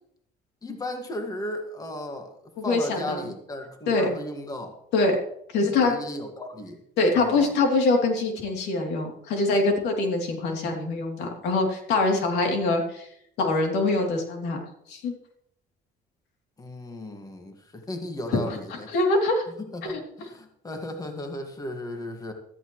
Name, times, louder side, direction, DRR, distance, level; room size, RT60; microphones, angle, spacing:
voice 1, 0.6-2.3 2.6-4.8 5.8-6.8 7.1-7.5 16.6-18.9 19.6-22.3, left 1 dB, 20° left, 4 dB, 1.9 m, -35 dB
voice 2, 2.6-3.3 3.9-4.1 4.9-5.2 5.5-6.0 7.0-13.1 13.4-15.1 18.3-19.4 19.8-20.0, left 3 dB, 85° left, 2 dB, 3.0 m, -24 dB
15.0 x 14.0 x 3.2 m, 0.73 s
cardioid pair, 110°, 17 cm